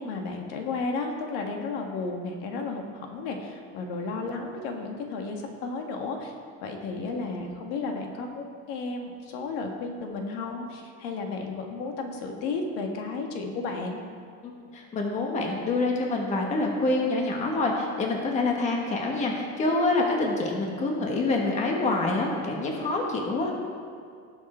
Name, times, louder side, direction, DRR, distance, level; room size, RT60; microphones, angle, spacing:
voice 1, 0.0-6.3 6.6-14.0, left 3 dB, 75° left, 2 dB, 1.8 m, -33 dB
voice 2, 14.4-23.5, left 2 dB, 25° left, 0 dB, 1.3 m, -26 dB
18.0 x 7.2 x 4.4 m, 2.2 s
cardioid pair, 175°, 30 cm